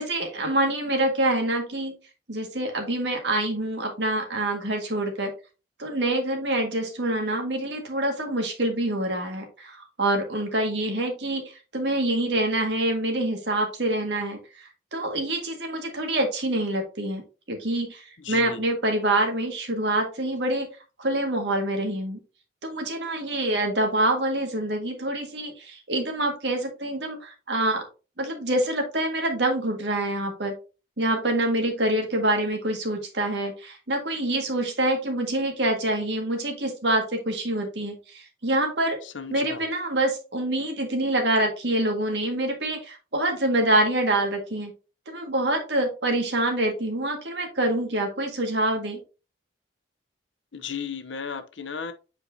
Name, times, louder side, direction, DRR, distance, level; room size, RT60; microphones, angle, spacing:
voice 1, 0.0-1.9 2.3-5.3 5.8-11.4 11.7-17.2 17.5-20.7 21.0-22.2 22.6-27.8 28.2-30.5 31.0-39.0 39.3-44.7 45.1-49.0, right 1 dB, 70° right, 1.8 m, -26 dB
voice 2, 18.2-18.6 39.0-39.6 50.5-51.9, left 6 dB, 80° left, 0.8 m, -35 dB
7.9 x 4.7 x 2.7 m
head